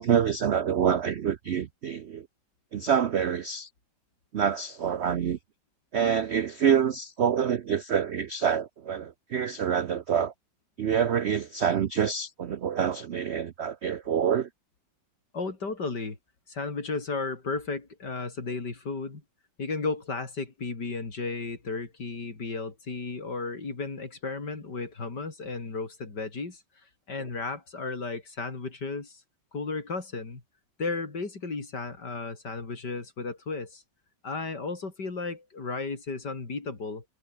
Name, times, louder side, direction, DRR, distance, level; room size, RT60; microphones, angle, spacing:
voice 1, 0.0-2.3 2.7-3.7 4.3-5.4 5.9-10.3 10.8-14.5, right 8 dB, 70° right, 0.6 m, -26 dB
voice 2, 15.3-16.2 16.5-19.2 19.6-26.6 27.1-29.2 29.5-30.4 30.8-33.8 34.2-37.0, left 3 dB, 60° left, 4.4 m, -34 dB
omnidirectional pair, 2.0 m